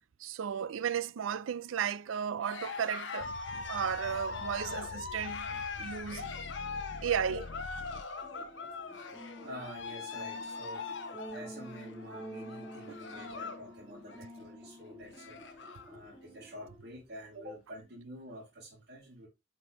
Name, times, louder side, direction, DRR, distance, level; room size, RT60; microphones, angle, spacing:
voice 1, 0.2-3.3 3.7-5.5 5.8-6.3 7.0-7.5 12.9-13.0, right 8 dB, 90° right, 0.4 m, -34 dB
Cheering, 2.4-13.7 14.0-14.4 14.8-14.9 15.1-15.9, left 4 dB, 70° left, 1.1 m, -41 dB
sound 1, 3.2-8.5, left 4 dB, 45° left, 0.4 m, -47 dB
sound 2, 8.2-16.8, equal, 5° right, 1.7 m, -49 dB
voice 2, 9.4-10.9 11.3-19.3, equal, 60° right, 2.1 m, -48 dB
8.6 x 4.6 x 3.0 m
head